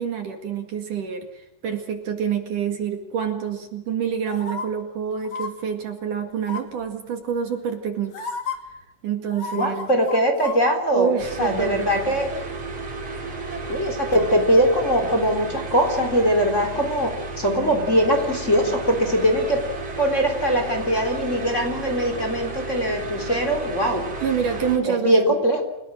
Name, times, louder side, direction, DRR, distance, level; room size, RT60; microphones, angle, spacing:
voice 1, 0.0-8.3 9.0-9.9 10.9-12.0 24.2-25.2, right 7 dB, 55° right, 5 dB, 3.3 m, -27 dB
sound 1, 4.3-4.7 5.2-5.5 6.4-6.8 7.7-7.8 8.1-8.6 9.3-10.6 10.9-11.0, left 5 dB, 45° left, 3.4 m, -32 dB
voice 2, 9.5-11.1 11.4-12.3 13.7-19.6 20.0-24.1 24.8-25.6, equal, 20° left, 4 dB, 3.8 m, -21 dB
sound 2, 11.2-24.8, right 3 dB, 35° right, 5.2 m, -33 dB
29.5 x 17.5 x 6.5 m, 0.96 s
omnidirectional pair, 4.7 m